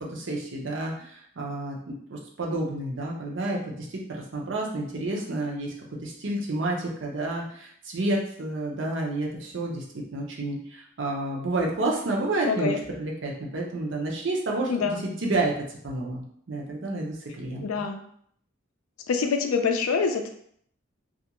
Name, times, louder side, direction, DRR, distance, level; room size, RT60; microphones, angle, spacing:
voice 1, 0.0-5.7 6.0-9.8 10.1-12.7 13.0-15.5 15.8-17.7, right 2 dB, 60° right, -2 dB, 0.6 m, -30 dB
voice 2, 12.4-12.8 14.7-15.0 17.6-18.0 19.1-20.3, left 5 dB, 90° left, 5 dB, 0.4 m, -25 dB
2.4 x 2.2 x 2.9 m, 0.65 s
head